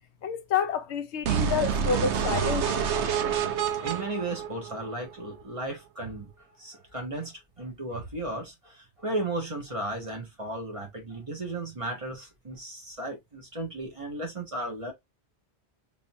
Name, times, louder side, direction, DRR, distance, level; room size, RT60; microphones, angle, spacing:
voice 1, 0.2-2.9, left 6 dB, 80° left, 0.9 m, -29 dB
sound 1, 1.2-5.2, right 7 dB, 85° right, 1.0 m, -28 dB
voice 2, 3.8-6.3 6.6-14.9, right 2 dB, 30° right, 1.3 m, -35 dB
3.8 x 2.9 x 2.7 m
omnidirectional pair, 1.1 m